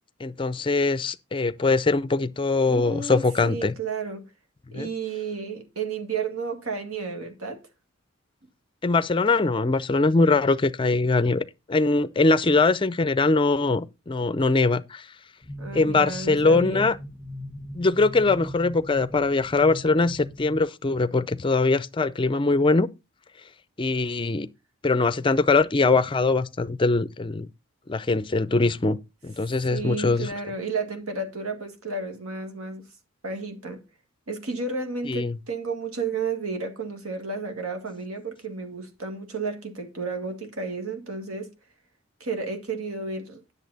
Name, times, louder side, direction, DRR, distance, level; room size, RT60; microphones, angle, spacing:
voice 1, 0.2-3.7 4.7-4.9 8.8-15.1 15.7-17.0 17.7-22.9 23.8-24.5 24.8-27.5 27.9-29.0 29.2-30.3 35.1-35.4, left 3 dB, 25° left, 0.4 m, -22 dB
voice 2, 2.7-4.3 4.7-7.6 15.6-17.0 29.7-32.9 33.2-33.8 34.3-41.5 42.2-43.5, right 4 dB, 85° right, 1.9 m, -32 dB
sound 1, 15.4-20.6, left 1 dB, 5° left, 1.0 m, -38 dB
10.5 x 6.8 x 4.0 m
head